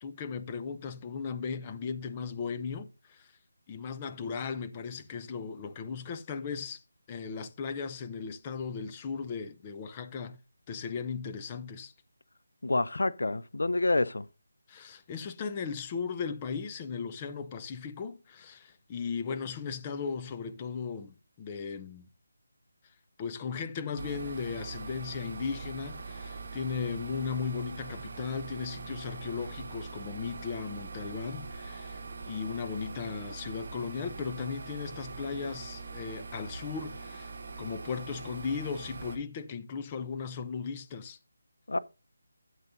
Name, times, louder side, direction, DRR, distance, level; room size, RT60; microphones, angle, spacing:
voice 1, 0.0-3.3 3.7-6.8 7.1-10.4 10.7-11.9 14.7-22.1 23.2-32.0 32.3-37.3 37.6-41.2, left 5 dB, 20° left, 0.7 m, -37 dB
voice 2, 12.6-14.3 41.7-41.8, left 2 dB, 80° left, 0.7 m, -28 dB
sound 1, 24.0-39.2, right 4 dB, 40° right, 2.0 m, -42 dB
13.5 x 8.2 x 2.6 m
figure-of-eight pair, 170°, 0 cm